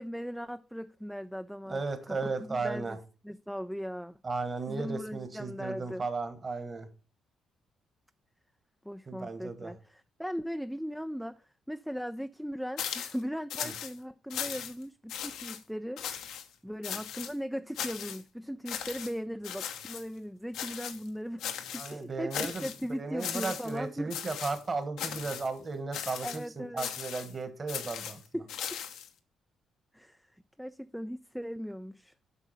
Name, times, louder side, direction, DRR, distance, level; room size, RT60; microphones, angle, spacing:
voice 1, 0.0-1.8 2.1-3.0 3.2-4.2 4.7-6.0 8.8-16.0 16.6-21.4 21.7-24.1 26.2-26.9 28.3-28.5 29.9-30.3 30.6-32.1, equal, ahead, 0.3 m, -38 dB
voice 2, 1.7-3.0 4.2-6.9 9.1-9.7 13.6-13.7 21.7-28.2, right 3 dB, 35° right, 1.4 m, -35 dB
sound 1, 12.8-13.2 13.5-13.9 14.3-14.8 15.1-15.6 16.0-16.4 16.8-17.3 17.7-18.2 18.7-19.1 19.4-20.0 20.5-21.1 21.4-21.9 22.3-22.8 23.2-23.8 24.1-24.6 25.0-25.5 25.9-26.4 26.8-27.3 27.7-29.1, left 9 dB, 85° left, 1.1 m, -38 dB
8.4 x 5.7 x 4.2 m
cardioid pair, 90°, 0 cm